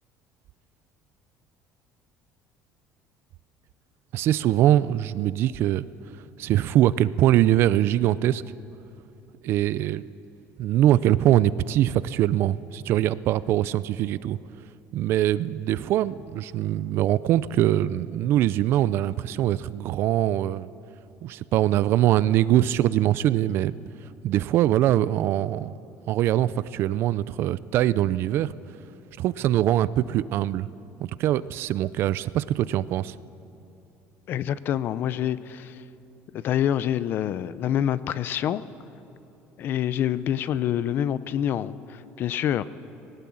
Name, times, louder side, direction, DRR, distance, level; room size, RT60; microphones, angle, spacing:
voice 1, 4.1-5.9 6.4-8.4 9.4-10.1 10.6-14.4 14.9-20.7 21.2-23.7 24.2-25.8 26.1-28.5 29.2-30.7 31.0-33.1, right 13 dB, 50° right, 17 dB, 0.4 m, -23 dB
voice 2, 34.3-35.7 36.3-38.6 39.6-42.6, left 10 dB, 40° left, 16 dB, 0.6 m, -26 dB
19.0 x 18.0 x 8.6 m, 2.9 s
cardioid pair, 170°, 5 cm